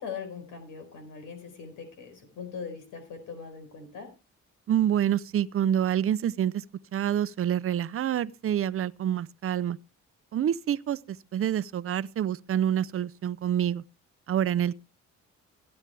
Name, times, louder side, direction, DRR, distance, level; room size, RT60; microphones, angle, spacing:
voice 1, 0.0-4.1, left 6 dB, 85° left, 4.7 m, -41 dB
voice 2, 4.7-6.6 6.9-9.8 10.3-13.8 14.3-14.7, right 10 dB, 45° right, 0.6 m, -27 dB
16.5 x 9.0 x 3.4 m
cardioid pair, 90°, 30 cm